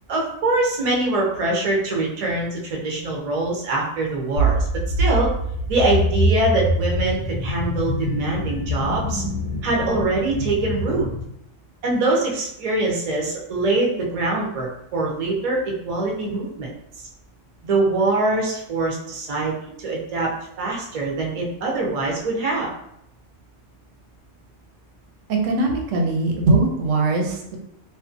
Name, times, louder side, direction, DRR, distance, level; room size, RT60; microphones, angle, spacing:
voice 1, 0.1-4.6 5.0-5.3 5.7-9.2 9.6-11.1 11.8-16.7 17.6-20.3 20.6-22.7, right 2 dB, 50° right, -2 dB, 0.5 m, -23 dB
sound 1, 4.4-11.2, right 1 dB, 65° left, 0.8 m, -24 dB
voice 2, 25.3-27.6, right 2 dB, 90° right, 1 dB, 0.9 m, -21 dB
2.5 x 2.1 x 2.5 m, 0.77 s
omnidirectional pair, 1.2 m